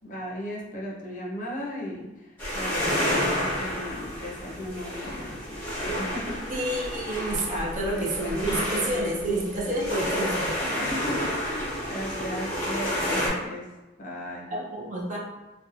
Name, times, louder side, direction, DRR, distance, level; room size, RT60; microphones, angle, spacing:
voice 1, 0.0-6.7 7.8-9.1 10.8-13.7 14.0-14.5, left 1 dB, 40° left, -3 dB, 0.5 m, -36 dB
sound 1, 2.4-13.3, equal, 10° left, 1.1 m, -30 dB
voice 2, 6.5-10.9 14.5-15.2, right 1 dB, 40° right, -4 dB, 0.5 m, -29 dB
2.9 x 2.1 x 2.4 m, 1.1 s
head